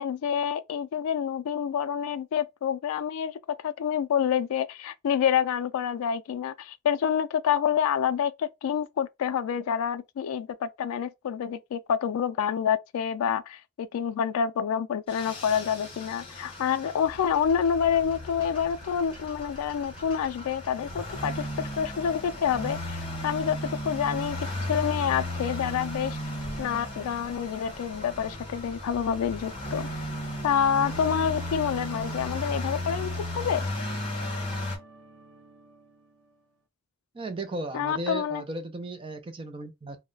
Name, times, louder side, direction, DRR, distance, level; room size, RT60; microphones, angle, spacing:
voice 1, 0.0-3.4 3.6-24.4 24.7-26.2 26.6-29.9 30.4-33.6 37.7-38.4, left 8 dB, 75° left, 0.3 m, -28 dB
sound 1, 15.1-34.8, left 1 dB, 25° left, 0.8 m, -35 dB
sound 2, 17.0-32.6, left 1 dB, 60° right, 1.0 m, -48 dB
sound 3, 28.1-36.5, right 2 dB, 80° right, 0.6 m, -51 dB
voice 2, 37.1-40.0, right 2 dB, 25° right, 0.4 m, -35 dB
2.2 x 2.1 x 3.7 m
head